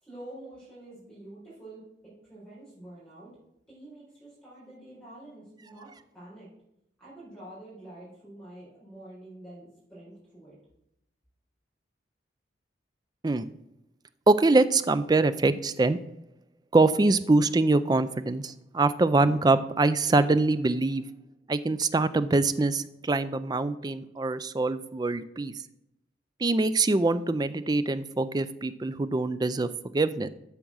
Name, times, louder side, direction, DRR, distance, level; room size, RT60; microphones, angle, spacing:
voice 1, 0.0-3.4 3.7-6.5 7.0-10.6, right 1 dB, 5° left, -8 dB, 4.3 m, -47 dB
voice 2, 14.3-16.0 16.7-21.0 21.5-25.5 26.4-30.3, right 3 dB, 20° right, 13 dB, 0.4 m, -24 dB
8.9 x 5.9 x 6.3 m, 0.82 s
head